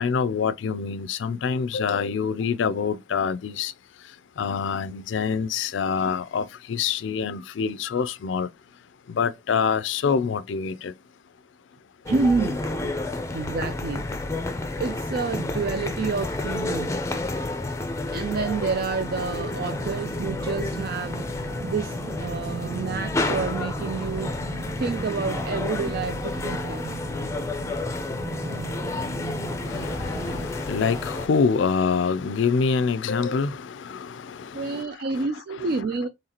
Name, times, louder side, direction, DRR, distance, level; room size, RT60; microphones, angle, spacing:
voice 1, 0.0-3.7 4.4-8.5 9.1-10.9 29.7-34.8 35.1-35.3 35.6-35.7, left 5 dB, 80° left, 0.4 m, -26 dB
sound 1, 12.1-31.3, left 2 dB, 15° left, 0.5 m, -30 dB
voice 2, 12.1-12.6 13.3-14.0 14.8-16.9 18.1-24.3 24.8-26.9 34.5-36.1, right 4 dB, 55° right, 0.4 m, -28 dB
sound 2, 19.3-30.5, right 1 dB, 75° right, 1.6 m, -36 dB
4.0 x 3.2 x 2.8 m
head